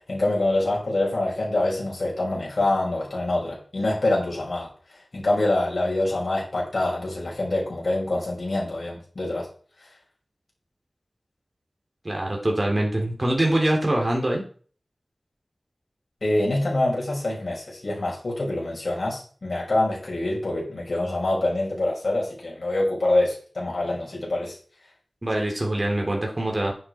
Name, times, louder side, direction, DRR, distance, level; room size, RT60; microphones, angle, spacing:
voice 1, 0.1-4.7 5.1-9.5 16.2-24.5, left 2 dB, 65° left, -4 dB, 6.6 m, -25 dB
voice 2, 12.1-14.4 25.2-26.7, right 1 dB, 35° right, 0 dB, 3.4 m, -24 dB
10.0 x 9.7 x 4.5 m, 0.42 s
wide cardioid pair, 60°, 0 cm